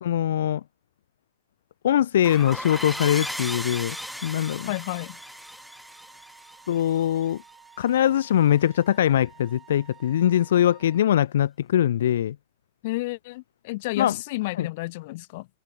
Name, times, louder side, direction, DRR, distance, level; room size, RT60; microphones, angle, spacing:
voice 1, 0.0-0.6 1.8-4.0 4.2-4.7 6.7-7.4 7.8-12.4 14.0-14.2 14.6-14.7, left 11 dB, 75° left, 0.4 m, -22 dB
sound 1, 2.2-7.5, equal, ahead, 3.8 m, -36 dB
Wind instrument woodwind instrument, 2.9-11.1, right 8 dB, 25° right, 7.1 m, -53 dB
voice 2, 4.7-5.2 12.8-15.5, left 21 dB, 60° left, 1.0 m, -31 dB
hypercardioid pair, 115°, 0 cm